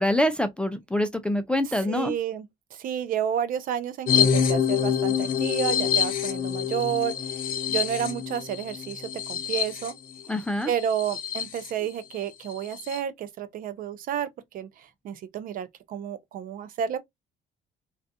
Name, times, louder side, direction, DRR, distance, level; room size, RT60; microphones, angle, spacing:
voice 1, 0.0-2.1 10.3-10.7, left 1 dB, 5° left, 0.3 m, -25 dB
voice 2, 1.9-2.4 2.8-9.9 10.7-14.3 14.5-17.0, right 9 dB, 55° right, 0.5 m, -31 dB
sound 1, 4.1-11.7 12.1-12.2 12.5-13.0, left 8 dB, 55° left, 0.7 m, -26 dB
2.3 x 2.3 x 2.6 m
cardioid pair, 110°, 17 cm